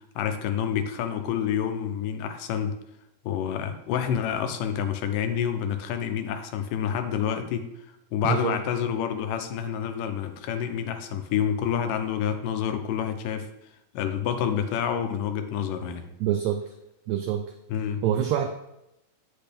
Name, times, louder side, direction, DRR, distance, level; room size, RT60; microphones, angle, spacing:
voice 1, 0.2-2.7 3.3-7.7 8.1-13.5 13.9-16.1 17.7-18.0, left 8 dB, 90° left, 7 dB, 2.4 m, -28 dB
voice 2, 8.2-8.5 16.2-16.6 17.1-17.4 18.0-18.5, right 10 dB, 85° right, 5 dB, 1.5 m, -25 dB
8.7 x 5.8 x 3.4 m, 0.87 s
omnidirectional pair, 3.7 m